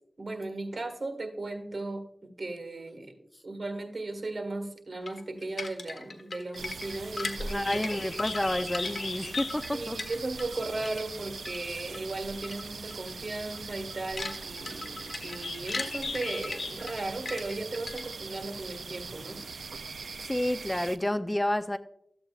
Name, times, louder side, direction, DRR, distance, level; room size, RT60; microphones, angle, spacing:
voice 1, 0.2-3.1 3.4-7.6 7.9-8.0 9.7-19.4, right 2 dB, 50° right, 5 dB, 1.7 m, -36 dB
sound 1, 5.1-10.6 10.8-12.0 12.4-12.6 12.9-13.1 13.5-18.3, left 3 dB, 65° left, 1.2 m, -39 dB
sound 2, 6.5-21.0, right 4 dB, 85° right, 0.3 m, -42 dB
Bird, 7.4-17.0, left 4 dB, 90° left, 0.8 m, -41 dB
voice 2, 7.5-10.0 20.2-21.8, left 1 dB, 15° left, 10 dB, 0.4 m, -30 dB
13.5 x 7.9 x 2.4 m, 0.73 s
wide cardioid pair, 75°, 0 cm